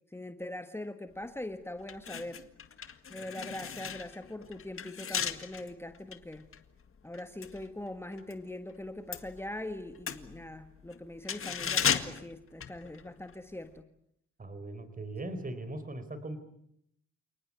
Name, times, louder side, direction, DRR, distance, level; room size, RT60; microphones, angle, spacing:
voice 1, 0.1-2.4 3.1-6.5 7.0-13.9 15.2-15.4, left 1 dB, 10° left, 8 dB, 1.6 m, -42 dB
sound 1, 1.2-1.4 1.8-8.4 8.7-13.3 13.6-13.8, left 7 dB, 45° left, 1.9 m, -36 dB
voice 2, 14.4-16.4, right 2 dB, 25° right, 11 dB, 4.2 m, -39 dB
29.0 x 19.0 x 9.7 m, 0.74 s
cardioid pair, 90°, 30 cm